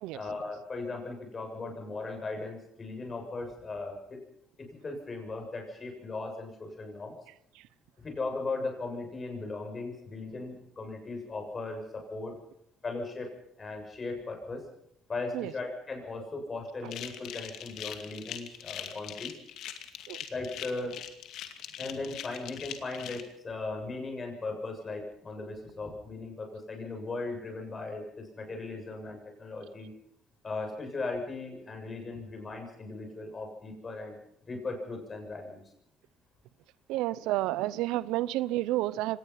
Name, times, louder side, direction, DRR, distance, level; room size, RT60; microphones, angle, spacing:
voice 1, 0.1-4.2 4.8-7.2 8.0-12.4 12.8-13.3 13.6-14.7 15.1-19.4 20.3-21.0 21.8-29.9 30.4-34.2 34.5-35.6, left 3 dB, 30° left, 3 dB, 7.3 m, -37 dB
sound 1, 16.9-23.2, left 10 dB, 70° left, 2.4 m, -41 dB
voice 2, 36.9-39.2, right 16 dB, 85° right, 19 dB, 0.7 m, -30 dB
25.0 x 18.5 x 5.8 m, 0.74 s
cardioid pair, 105°, 0 cm